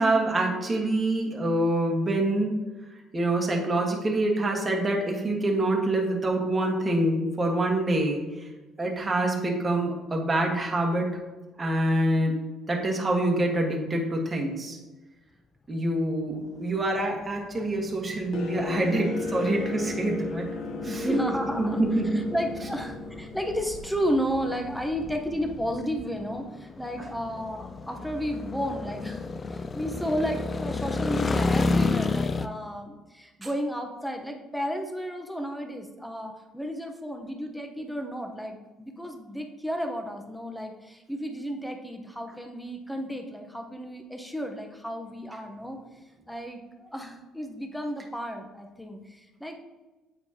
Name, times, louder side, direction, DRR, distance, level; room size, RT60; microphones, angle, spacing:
voice 1, 0.0-2.6 3.1-8.2 8.8-11.1 11.6-12.4 12.7-14.8 15.7-20.5 20.8-21.2 21.6-22.1, right 1 dB, 25° right, 0 dB, 1.4 m, -26 dB
sound 1, 16.4-32.5, left 3 dB, 35° left, 0.4 m, -32 dB
sound 2, 18.3-24.9, left 3 dB, 65° left, 0.8 m, -34 dB
voice 2, 20.8-45.8 46.3-49.5, equal, 5° left, 4 dB, 1.0 m, -33 dB
8.0 x 4.3 x 2.9 m, 1.2 s
supercardioid pair, 80°, 0 cm